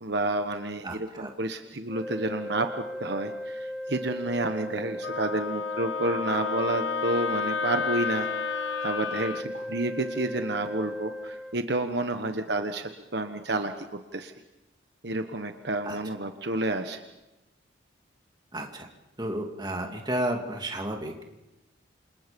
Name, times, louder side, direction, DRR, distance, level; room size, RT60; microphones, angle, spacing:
voice 1, 0.0-8.3 8.8-14.3 15.0-17.0, right 2 dB, 55° right, 6 dB, 1.3 m, -30 dB
voice 2, 0.8-1.3 15.8-16.0 18.5-18.9 19.2-21.3, right 1 dB, 20° right, 2 dB, 2.7 m, -32 dB
sound 1, 1.9-11.6, equal, ahead, 0.8 m, -37 dB
Wind instrument woodwind instrument, 5.0-9.4, left 6 dB, 75° left, 0.8 m, -31 dB
29.0 x 27.0 x 5.4 m, 0.97 s
head